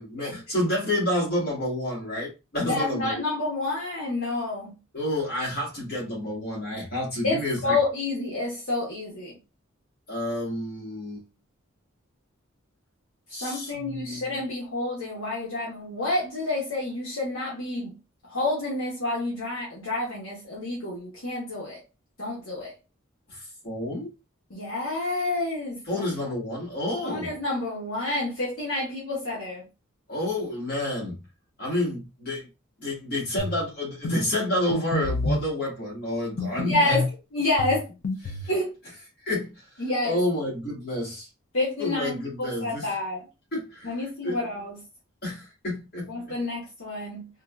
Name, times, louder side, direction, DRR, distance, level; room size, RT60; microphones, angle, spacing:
voice 1, 0.0-3.2 4.9-7.8 10.1-11.2 13.3-14.4 23.3-24.1 25.9-27.3 30.1-31.2 31.6-32.5 32.8-37.0 38.2-38.5 39.3-41.3 41.8-42.9 43.5-44.4 45.2-46.3, left 1 dB, 45° left, 1.7 m, -29 dB
voice 2, 2.7-4.7 7.2-9.3 13.4-17.9 18.3-21.8 22.2-22.7 24.5-26.0 27.0-29.6 36.6-37.0 37.3-37.9 38.5-38.7 39.8-40.2 41.5-43.2 43.8-44.8 46.1-47.3, left 2 dB, 70° left, 1.2 m, -29 dB
sound 1, 33.4-33.6 34.0-34.2 34.7-35.5 36.4-37.1 37.6-38.5, left 2 dB, 85° left, 0.5 m, -28 dB
3.8 x 2.4 x 2.3 m
head